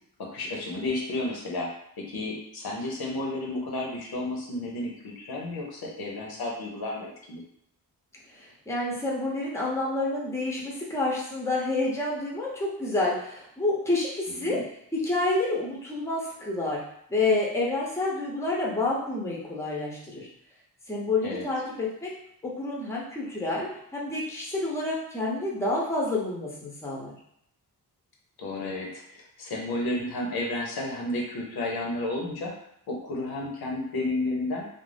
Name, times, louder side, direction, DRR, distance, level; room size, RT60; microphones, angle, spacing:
voice 1, 0.2-1.7 2.0-7.4 14.4-14.6 21.2-21.5 28.4-32.5 32.9-34.7, left 2 dB, 70° left, -1 dB, 0.7 m, -32 dB
voice 2, 8.3-14.6 14.9-16.8 17.1-20.3 20.9-22.1 22.4-27.1, left 2 dB, 5° left, -3 dB, 0.6 m, -29 dB
2.5 x 2.0 x 3.3 m, 0.72 s
wide cardioid pair, 120°, 39 cm